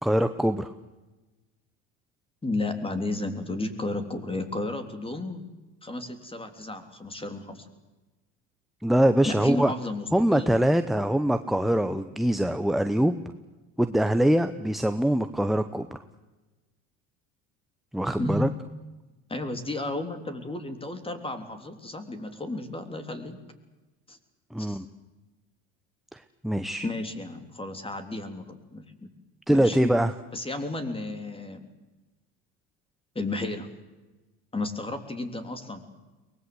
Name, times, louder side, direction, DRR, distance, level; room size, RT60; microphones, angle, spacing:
voice 1, 0.0-0.7 8.8-9.7 10.1-13.2 13.8-16.0 17.9-18.5 24.5-24.9 26.1-26.9 29.5-30.1, right 1 dB, ahead, 10 dB, 0.9 m, -23 dB
voice 2, 2.4-5.4 5.8-7.7 9.3-10.6 18.2-18.5 19.3-23.4 24.1-24.2 24.6-24.8 26.8-28.8 29.5-29.9 30.3-31.6 33.2-33.7 34.5-35.8, left 2 dB, 15° left, 8 dB, 3.5 m, -33 dB
23.0 x 20.0 x 8.0 m, 1.2 s
supercardioid pair, 95°, 36 cm